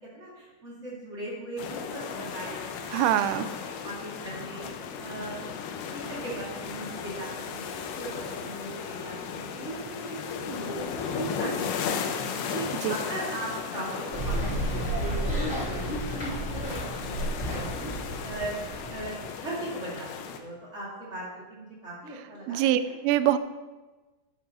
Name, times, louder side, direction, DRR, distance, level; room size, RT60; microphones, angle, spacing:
voice 1, 0.1-3.1 3.8-4.7 5.0-5.4 5.9-11.9 12.5-16.2 16.5-17.9 18.2-19.1 19.4-20.1 20.4-22.6 22.9-23.0, right 1 dB, 45° right, -6 dB, 0.9 m, -38 dB
sound 1, 1.6-20.4, left 6 dB, 90° left, 2.3 m, -36 dB
voice 2, 2.9-3.5 12.8-13.0 22.5-23.4, right 12 dB, 85° right, 11 dB, 3.1 m, -24 dB
sound 2, 14.1-19.2, right 1 dB, 25° left, 1.8 m, -31 dB
11.5 x 9.6 x 3.0 m, 1.2 s
omnidirectional pair, 5.8 m